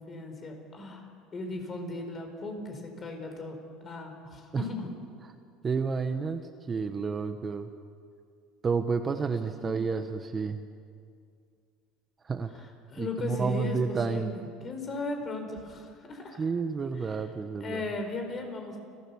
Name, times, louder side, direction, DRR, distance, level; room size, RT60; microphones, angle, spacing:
voice 1, 0.0-3.6 3.8-4.9 9.6-9.7 12.5-16.4 17.0-17.2 17.6-18.8, left 3 dB, 30° left, 4 dB, 4.7 m, -37 dB
voice 2, 5.6-6.4 6.7-7.7 8.6-10.6 12.2-12.6 13.0-14.3 16.4-17.8, right 5 dB, 25° right, 8 dB, 1.0 m, -30 dB
30.0 x 14.0 x 7.2 m, 2.3 s
supercardioid pair, 120°, 0 cm